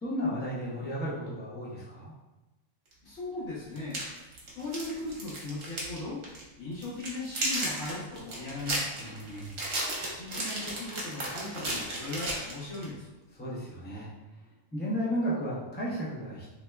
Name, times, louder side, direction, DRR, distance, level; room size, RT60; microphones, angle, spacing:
voice 1, 0.0-2.1 9.0-9.6 13.3-14.1 14.7-16.5, equal, 15° left, -7 dB, 0.4 m, -33 dB
sound 1, 2.9-3.0 3.8-6.0 6.2-6.4 6.8-12.9, right 1 dB, 60° right, 1.1 m, -34 dB
voice 2, 3.0-4.0 4.6-6.2 6.6-9.1 10.1-13.1, left 2 dB, 65° left, -10 dB, 1.2 m, -38 dB
3.3 x 2.8 x 2.2 m, 1.1 s
omnidirectional pair, 1.4 m